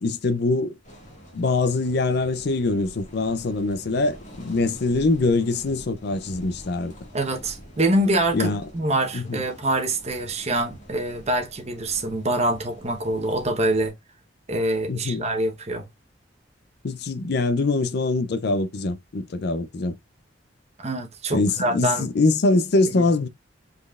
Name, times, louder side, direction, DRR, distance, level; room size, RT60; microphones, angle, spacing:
voice 1, 0.0-0.8 1.3-6.9 8.3-8.6 9.1-9.4 14.9-15.2 16.8-20.0 21.3-23.3, left 3 dB, 55° left, 0.5 m, -23 dB
sound 1, 0.8-13.9, equal, 40° left, 1.9 m, -46 dB
voice 2, 7.1-13.9 14.5-15.8 20.8-22.1, right 1 dB, 35° right, 1.0 m, -25 dB
5.4 x 4.1 x 2.4 m
head